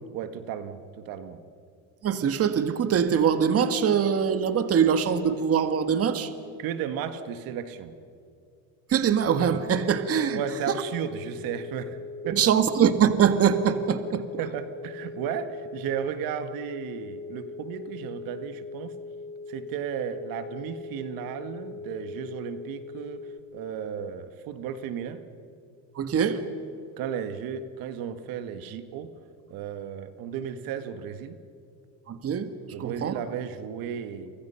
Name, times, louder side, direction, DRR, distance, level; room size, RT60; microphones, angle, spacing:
voice 1, 0.1-1.4 6.6-7.9 10.3-12.0 12.2-12.5 14.4-19.0 19.5-25.2 27.0-29.1 29.5-31.4 32.7-34.3, right 8 dB, 70° right, 10 dB, 1.7 m, -34 dB
voice 2, 2.0-6.3 8.9-10.4 12.2-14.3 26.0-26.4 32.1-32.5 32.8-33.1, right 7 dB, 40° right, 10 dB, 1.7 m, -23 dB
sound 1, 9.2-23.4, left 4 dB, 25° left, 0.8 m, -40 dB
30.0 x 25.0 x 5.8 m, 2.4 s
cardioid pair, 110°, 36 cm